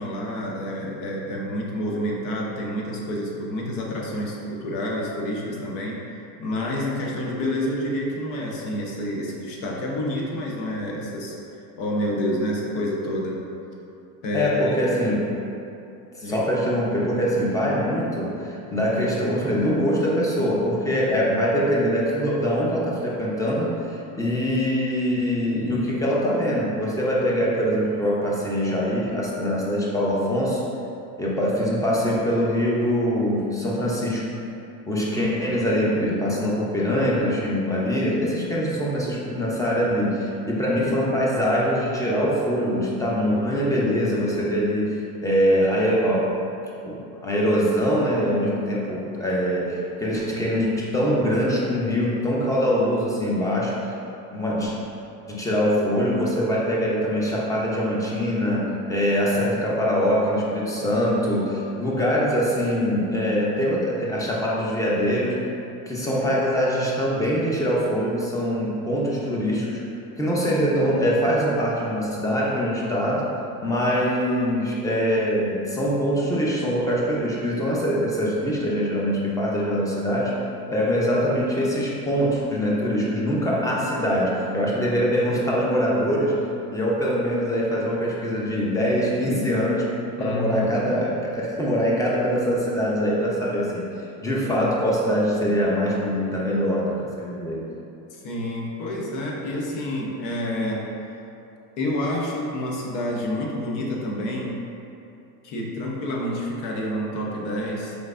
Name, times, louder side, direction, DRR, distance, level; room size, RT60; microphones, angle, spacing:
voice 1, 0.0-6.0 6.4-11.4 11.8-13.4 14.2-14.8 16.2-16.4 35.1-35.6 90.2-90.9 98.1-100.9 101.8-104.6 105.4-108.0, left 1 dB, 70° left, -2 dB, 0.9 m, -28 dB
voice 2, 14.3-15.3 16.1-30.6 31.2-34.2 34.9-46.5 46.8-53.9 54.3-54.7 55.3-65.4 65.9-69.8 70.2-73.3 73.6-80.3 80.7-86.3 86.7-89.9 90.2-93.9 94.2-97.6, equal, 10° left, -5 dB, 0.6 m, -23 dB
4.9 x 3.2 x 2.5 m, 2.8 s
supercardioid pair, 110°, 44 cm